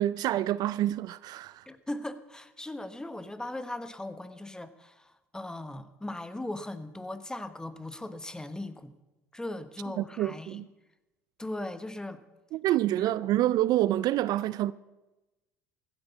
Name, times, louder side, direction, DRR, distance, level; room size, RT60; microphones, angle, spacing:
voice 1, 0.0-1.7 10.0-10.7 12.5-14.7, right 14 dB, 55° right, 0.4 m, -27 dB
voice 2, 1.7-8.9 9.3-10.7 11.4-12.2 13.5-13.6, left 1 dB, 10° left, 1.1 m, -38 dB
15.0 x 9.8 x 6.9 m
hypercardioid pair, 75°, 8 cm